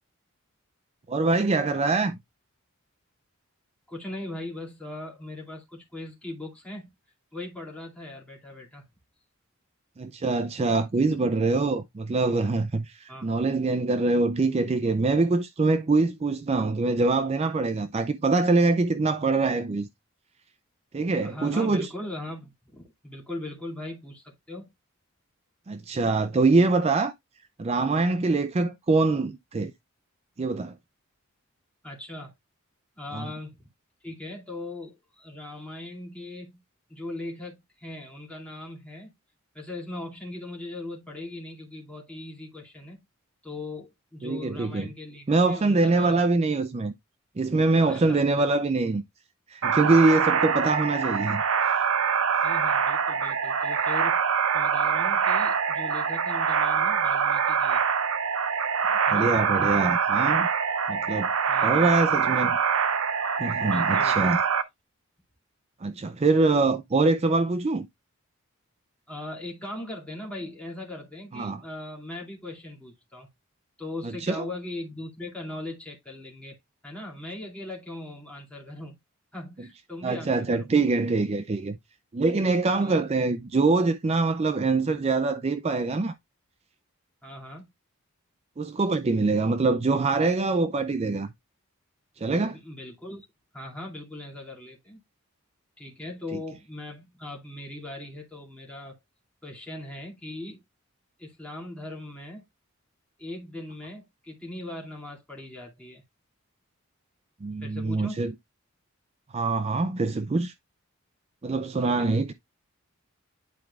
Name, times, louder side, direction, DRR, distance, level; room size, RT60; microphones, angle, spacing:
voice 1, 1.1-2.2 10.0-19.9 20.9-21.9 25.7-27.1 27.6-29.7 30.4-30.7 33.1-33.3 44.2-44.9 45.3-46.9 47.4-49.0 49.5-51.8 59.1-60.5 60.9-61.3 61.6-62.6 63.4-64.4 65.8-67.9 71.3-71.6 74.0-74.4 80.0-81.8 82.1-86.1 88.6-91.3 92.2-92.6 107.4-108.3 109.3-110.5 111.4-112.3, right 3 dB, 30° right, 0.4 m, -24 dB
voice 2, 3.9-6.9 7.3-8.9 13.1-13.3 21.2-24.7 31.8-32.3 33.0-33.7 34.0-36.6 36.9-39.1 39.5-43.0 43.4-46.3 47.9-48.5 52.4-54.2 54.5-57.8 59.1-59.3 61.5-61.9 63.6-64.2 69.1-73.3 73.8-76.6 76.8-79.0 79.3-80.7 82.8-83.3 87.2-87.7 92.4-93.3 93.5-95.0 95.8-99.0 99.4-100.6 101.2-102.4 103.2-106.0 107.6-108.2 111.8-112.1, left 1 dB, 5° left, 2.3 m, -39 dB
sound 1, 49.6-64.6, right 6 dB, 70° right, 0.7 m, -24 dB
10.5 x 4.5 x 2.3 m
head